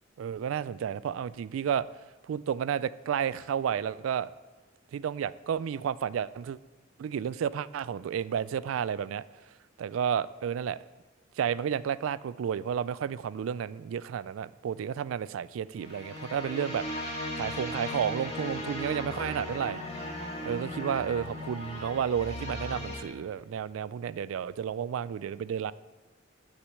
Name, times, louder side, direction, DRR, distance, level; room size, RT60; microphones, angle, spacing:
voice 1, 0.2-1.9 2.3-4.3 4.9-6.6 7.0-9.2 9.8-10.8 11.4-19.8 20.4-25.7, right 8 dB, 85° right, 18 dB, 0.3 m, -31 dB
sound 1, 15.7-23.0, left 1 dB, 30° left, 1.9 m, -37 dB
9.7 x 6.1 x 8.1 m, 1.3 s
head